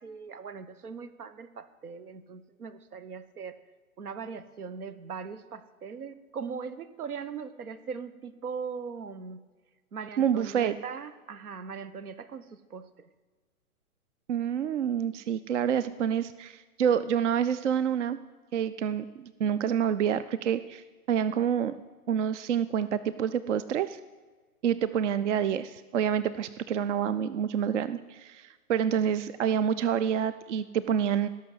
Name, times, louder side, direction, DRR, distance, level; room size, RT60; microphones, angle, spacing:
voice 1, 0.0-3.6 4.0-9.4 9.9-12.9, right 6 dB, 85° right, 14 dB, 1.2 m, -40 dB
voice 2, 10.2-10.8 14.3-18.2 18.5-21.7 22.1-24.0 24.6-31.3, right 8 dB, 55° right, 14 dB, 0.6 m, -28 dB
17.0 x 6.5 x 7.8 m, 1.3 s
hypercardioid pair, 150°, 43 cm